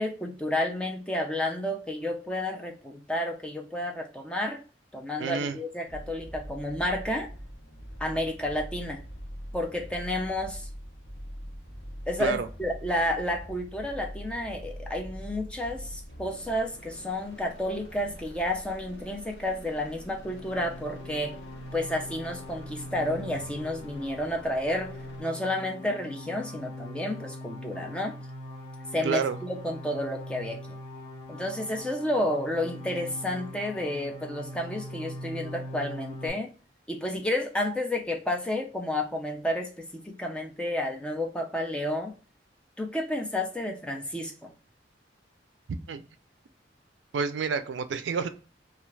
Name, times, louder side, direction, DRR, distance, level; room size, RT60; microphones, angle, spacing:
voice 1, 0.0-4.6 4.9-7.3 8.0-9.0 9.5-10.7 12.1-21.3 21.7-24.9 25.2-28.2 28.9-30.8 31.3-36.5 36.9-42.1 42.8-44.5, left 1 dB, 5° left, 2 dB, 0.4 m, -31 dB
voice 2, 5.2-5.6 12.2-12.5 29.0-29.4 45.9-46.0 47.1-48.3, right 6 dB, 75° right, 10 dB, 0.4 m, -29 dB
sound 1, 5.9-25.2, equal, 65° left, 0.7 m, -44 dB
sound 2, 20.0-36.3, left 1 dB, 35° left, 1.0 m, -42 dB
2.4 x 2.3 x 3.1 m, 0.37 s
head